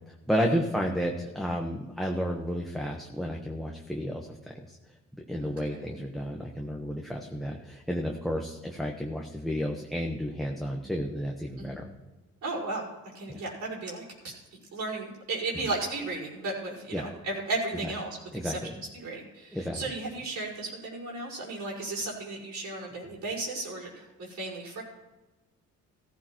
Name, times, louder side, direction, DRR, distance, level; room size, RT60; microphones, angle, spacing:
voice 1, 0.1-4.3 4.7-4.8 5.3-11.9 13.3-13.4 16.9-17.1 17.8-17.9 18.3-18.7 19.5-19.8, equal, ahead, 0 dB, 1.2 m, -32 dB
voice 2, 5.4-5.8 11.6-11.8 12.4-12.8 13.1-14.3 14.7-18.6 18.9-24.8, right 2 dB, 65° right, -4 dB, 5.4 m, -35 dB
15.0 x 15.0 x 3.1 m, 1.1 s
cardioid pair, 90°, 30 cm